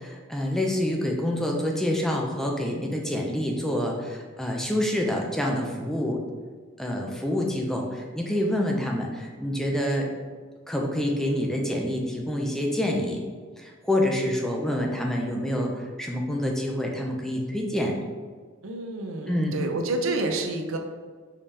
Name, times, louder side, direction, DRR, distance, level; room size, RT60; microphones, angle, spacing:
voice 1, 0.0-6.2 6.8-10.1 10.7-13.2 13.6-17.9 19.3-19.6, left 1 dB, ahead, 0 dB, 0.5 m, -27 dB
voice 2, 18.6-20.8, right 2 dB, 85° right, 4 dB, 0.5 m, -29 dB
5.0 x 2.8 x 3.4 m, 1.5 s
head